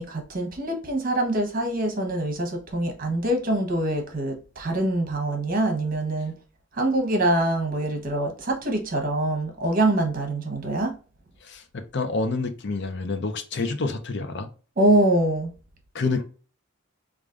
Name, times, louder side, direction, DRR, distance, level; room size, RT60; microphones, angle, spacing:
voice 1, 0.0-6.3 6.7-10.9 14.8-15.5, right 1 dB, 45° right, 1.0 m, -24 dB
voice 2, 11.4-14.5 15.9-16.2, left 3 dB, 55° left, 0.6 m, -28 dB
4.8 x 2.5 x 2.5 m
head